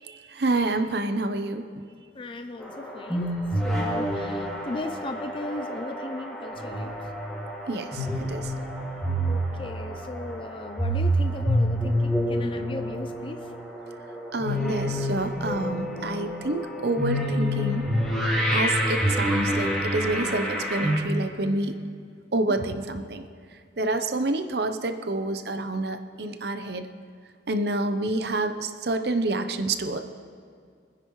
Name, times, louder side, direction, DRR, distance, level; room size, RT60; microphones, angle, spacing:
voice 1, 0.1-1.7 7.7-8.5 14.3-17.9 18.5-21.8 22.3-23.2 23.8-26.9 27.5-30.0, right 2 dB, 60° right, 8 dB, 0.7 m, -28 dB
voice 2, 2.1-3.3 3.6-6.9 9.3-13.5 23.8-24.0, left 2 dB, 30° left, 7 dB, 0.4 m, -37 dB
sound 1, 2.6-21.0, equal, ahead, 2.3 m, -28 dB
24.5 x 9.9 x 3.2 m, 2.2 s
head